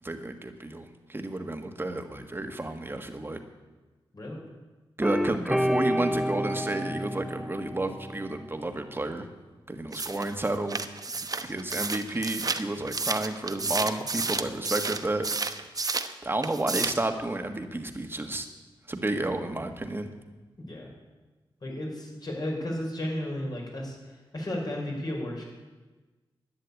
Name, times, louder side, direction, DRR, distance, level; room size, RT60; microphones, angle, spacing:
voice 1, 0.0-3.4 5.0-9.2 9.7-10.8 11.4-15.3 16.2-18.5 18.9-20.1, right 2 dB, 25° right, 6 dB, 1.7 m, -31 dB
sound 1, 5.0-8.5, equal, 5° right, 0.6 m, -29 dB
sound 2, 9.9-16.1 16.4-17.1, right 3 dB, 40° right, 1.0 m, -31 dB
voice 2, 14.2-14.5 20.6-20.9 21.6-24.0 24.3-25.5, left 1 dB, 45° left, -1 dB, 5.4 m, -34 dB
11.5 x 9.9 x 8.5 m, 1.2 s
cardioid pair, 55°, 9 cm